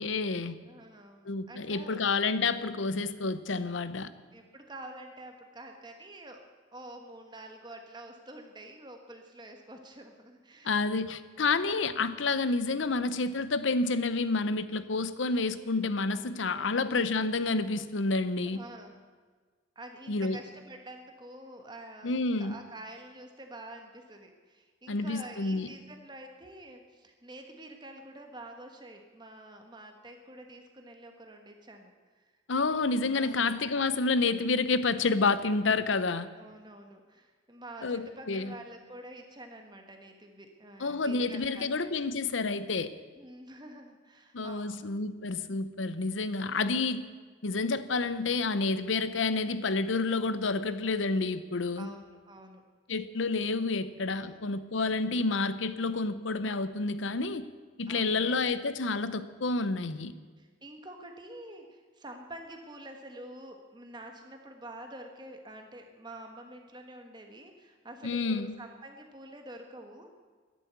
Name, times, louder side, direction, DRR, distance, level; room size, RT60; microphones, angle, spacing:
voice 1, 0.0-0.6 1.2-4.1 10.6-18.6 20.1-20.4 22.0-22.5 24.9-25.7 32.5-36.3 37.8-38.5 40.8-42.9 44.3-47.0 47.4-51.9 52.9-57.4 57.8-60.1 68.0-68.5, left 3 dB, 90° left, 13 dB, 0.8 m, -29 dB
voice 2, 0.7-2.1 4.3-6.4 6.7-10.7 14.7-14.8 16.5-16.8 18.5-19.0 19.7-32.3 33.1-33.5 36.4-41.7 43.1-44.8 51.8-52.6 54.1-54.4 57.9-58.4 60.4-70.2, right 1 dB, 25° right, 4 dB, 1.3 m, -47 dB
13.0 x 10.5 x 8.1 m, 1.5 s
head